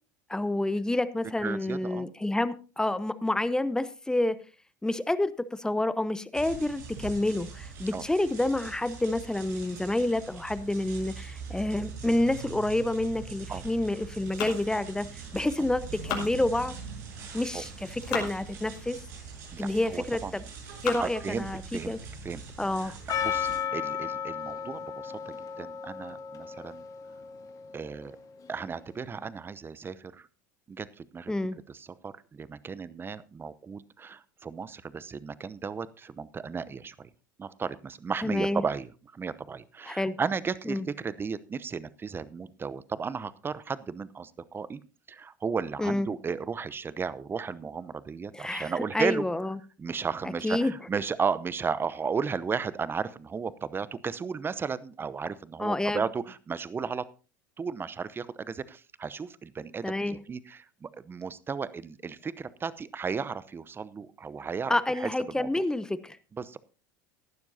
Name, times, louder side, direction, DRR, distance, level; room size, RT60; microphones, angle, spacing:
voice 1, 0.3-4.3 4.8-15.1 15.3-16.7 17.3-19.0 19.6-20.4 20.8-21.6 21.9-22.0 22.6-22.9 31.3-31.6 38.2-38.6 39.9-40.1 40.7-40.8 45.8-46.1 48.3-49.6 50.4-50.7 55.6-56.0 59.8-60.2 64.7-66.2, left 1 dB, 5° left, 14 dB, 0.9 m, -28 dB
voice 2, 1.4-2.1 7.9-8.0 13.5-13.6 17.2-17.6 19.5-20.4 21.0-21.9 22.2-22.4 22.8-26.9 27.7-28.2 28.5-30.3 30.7-31.3 31.7-37.1 37.4-44.8 45.1-49.3 49.8-57.1 57.6-65.1 65.4-65.5 66.3-66.6, right 5 dB, 20° right, 17 dB, 0.8 m, -34 dB
sound 1, 6.3-23.6, right 5 dB, 70° right, 7.2 m, -43 dB
sound 2, 14.2-15.4 15.8-16.9 17.6-18.4 19.0-19.1 19.8-20.2 20.6-21.2 21.8-21.9 22.3-22.4 22.8-23.1, left 8 dB, 65° left, 5.1 m, -37 dB
Percussion, 23.1-28.1, left 8 dB, 35° left, 2.2 m, -34 dB
17.5 x 12.0 x 2.8 m, 0.34 s
hypercardioid pair, 85°, 10 cm